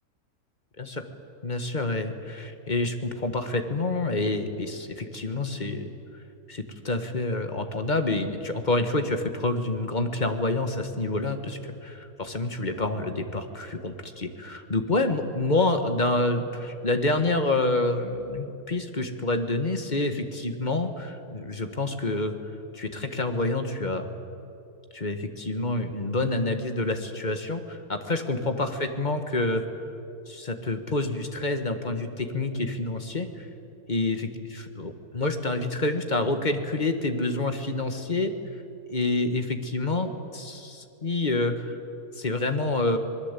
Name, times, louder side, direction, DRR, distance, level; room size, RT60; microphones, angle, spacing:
voice 1, 1.4-5.9 6.5-22.3 22.7-24.1 24.9-29.6 30.3-33.5 33.9-34.3 34.7-38.3 38.9-41.8 42.1-43.0, left 2 dB, 30° left, 7 dB, 1.6 m, -28 dB
26.0 x 20.5 x 8.4 m, 2.8 s
omnidirectional pair, 1.7 m